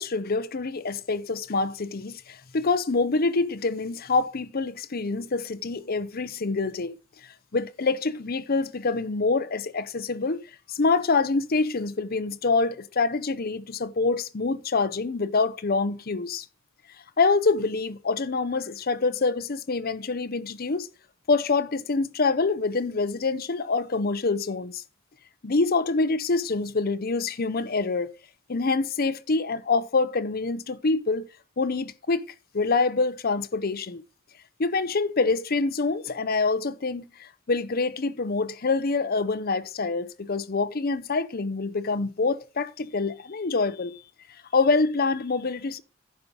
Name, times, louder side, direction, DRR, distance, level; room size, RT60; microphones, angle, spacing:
voice 1, 0.0-6.9 7.2-10.4 10.7-16.4 17.2-20.9 21.3-24.8 25.4-28.1 28.5-31.3 31.6-32.2 32.5-34.0 34.6-44.0 44.5-45.8, left 3 dB, 45° left, 0.7 m, -26 dB
10.5 x 5.5 x 5.3 m
head